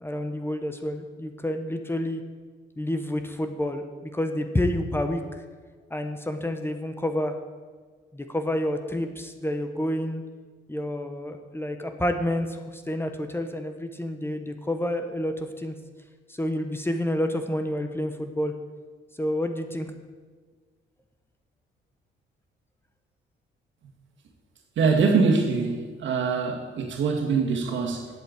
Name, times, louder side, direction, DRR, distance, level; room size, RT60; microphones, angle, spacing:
voice 1, 0.0-2.2 2.8-3.8 4.1-5.2 5.9-7.3 8.1-10.2 10.7-15.7 16.3-18.5 19.2-19.9, left 1 dB, 10° left, 6 dB, 1.1 m, -29 dB
voice 2, 24.8-28.1, right 4 dB, 70° right, 2 dB, 2.1 m, -23 dB
8.4 x 8.1 x 8.2 m, 1.5 s
cardioid pair, 90°, 20 cm